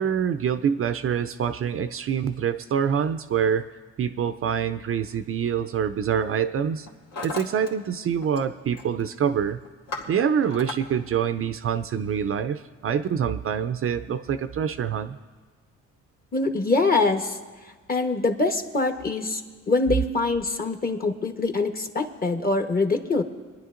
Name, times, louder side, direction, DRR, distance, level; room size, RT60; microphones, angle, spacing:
voice 1, 0.0-3.6 4.0-6.9 7.2-9.6 10.1-15.2, right 8 dB, 45° right, 10 dB, 0.5 m, -25 dB
Hammer, 5.2-5.4 6.2-6.5 6.7-7.7 8.0-8.5 8.7-9.1 9.5-10.8, left 3 dB, 65° left, 1.9 m, -37 dB
voice 2, 16.3-17.4 17.9-19.4 19.7-23.2, left 3 dB, 30° left, 5 dB, 1.1 m, -24 dB
29.0 x 10.5 x 2.5 m, 1.4 s
cardioid pair, 90°, 30 cm